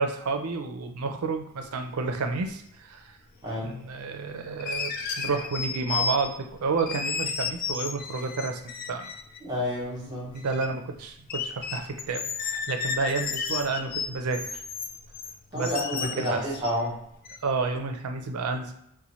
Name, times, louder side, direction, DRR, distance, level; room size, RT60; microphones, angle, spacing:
voice 1, 0.0-3.1 3.6-8.6 8.9-9.1 10.3-14.6 15.5-16.4 17.4-18.7, right 4 dB, 90° right, 6 dB, 0.5 m, -30 dB
sound 1, 2.5-2.6 4.6-6.5 6.8-9.4 10.0-10.7 11.0-11.1 11.3-16.9 17.2-17.4, left 5 dB, 40° left, 0.3 m, -32 dB
voice 2, 3.4-3.8 9.4-10.4 15.5-17.0, left 1 dB, 20° right, -5 dB, 1.4 m, -30 dB
3.0 x 2.2 x 4.1 m, 0.75 s
head